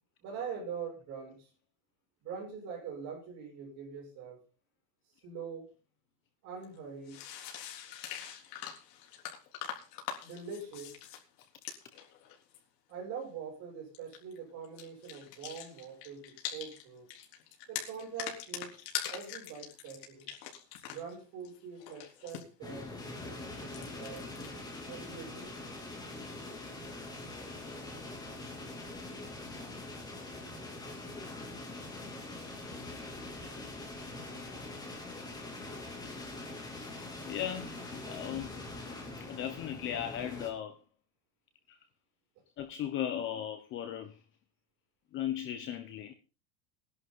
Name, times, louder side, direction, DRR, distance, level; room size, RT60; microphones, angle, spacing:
voice 1, 0.2-1.5 2.2-4.4 5.2-5.7 6.4-7.2 10.2-11.0 12.9-17.1 17.7-18.8 19.1-20.3 20.9-22.9 23.2-25.5, right 6 dB, 35° right, 7.4 m, -43 dB
sound 1, 6.6-6.7 7.1-12.6 13.9-14.4 14.6-16.8 17.1-21.1 21.4-22.4 23.6-24.5, left 10 dB, 80° left, 3.9 m, -43 dB
sound 2, 22.6-40.5, left 2 dB, 10° left, 2.7 m, -43 dB
voice 2, 37.3-38.6 39.3-40.8 41.7-41.8 42.6-44.1 45.1-46.1, left 10 dB, 25° left, 1.1 m, -37 dB
20.0 x 11.0 x 4.0 m
supercardioid pair, 180°, 48 cm